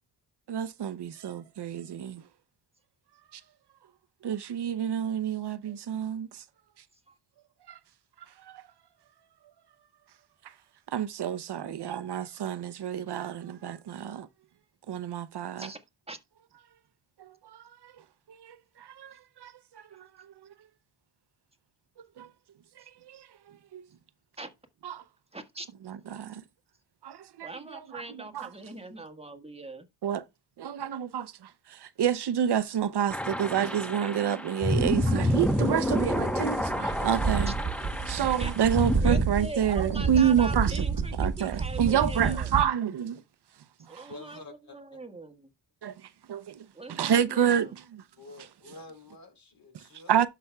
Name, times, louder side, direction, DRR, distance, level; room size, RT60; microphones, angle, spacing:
voice 1, 0.5-2.2 3.3-3.4 4.2-6.4 7.7-7.8 8.4-8.6 10.9-14.3 14.9-15.7 17.2-17.9 18.3-20.1 22.2-22.3 23.1-23.3 23.7-23.8 24.8-25.0 26.1-26.4 27.0-27.8 28.3-28.5 30.0-30.2 30.6-37.5 38.1-40.7 41.2-43.2 43.9-44.1 45.8-45.9 46.3-46.6 46.9-48.0 50.1-50.3, right 9 dB, 70° right, 0.7 m, -29 dB
voice 2, 15.6-16.2 22.8-22.9 24.4-24.5 25.3-25.7 27.4-29.9 37.5-37.6 38.4-38.5 39.0-42.6 43.9-45.5 46.7-47.7, right 2 dB, 15° right, 1.5 m, -41 dB
sound 1, 33.1-39.0, left 1 dB, 5° left, 1.0 m, -29 dB
sound 2, 34.8-42.6, right 4 dB, 45° right, 1.3 m, -30 dB
voice 3, 44.1-44.8 48.2-50.1, left 3 dB, 55° left, 3.4 m, -48 dB
12.0 x 5.9 x 2.3 m
cardioid pair, 80°, 42 cm